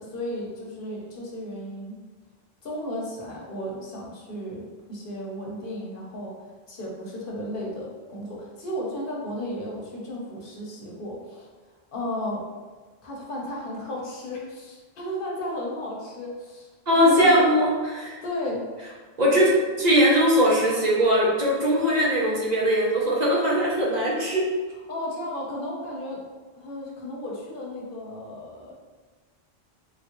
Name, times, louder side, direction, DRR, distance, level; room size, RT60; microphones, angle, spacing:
voice 1, 0.0-2.0 2.6-6.3 6.7-11.5 11.9-12.6 13.0-16.7 17.0-17.3 18.2-18.7 24.9-26.2 26.5-28.8, left 1 dB, 60° left, -3 dB, 0.9 m, -34 dB
voice 2, 16.9-18.2 19.2-19.5 19.8-24.5, equal, 45° right, -5 dB, 0.8 m, -20 dB
3.4 x 2.4 x 3.0 m, 1.4 s
omnidirectional pair, 1.1 m